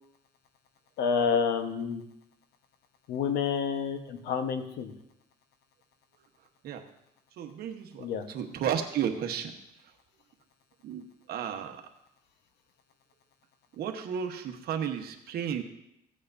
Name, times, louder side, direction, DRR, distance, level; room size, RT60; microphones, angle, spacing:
voice 1, 1.0-2.0 3.1-4.9 8.0-8.3, left 6 dB, 80° left, 7 dB, 1.2 m, -29 dB
voice 2, 7.4-9.5 10.8-11.8 13.8-15.6, right 8 dB, 65° right, 5 dB, 1.2 m, -33 dB
15.5 x 8.6 x 2.7 m, 0.80 s
cardioid pair, 110°, 17 cm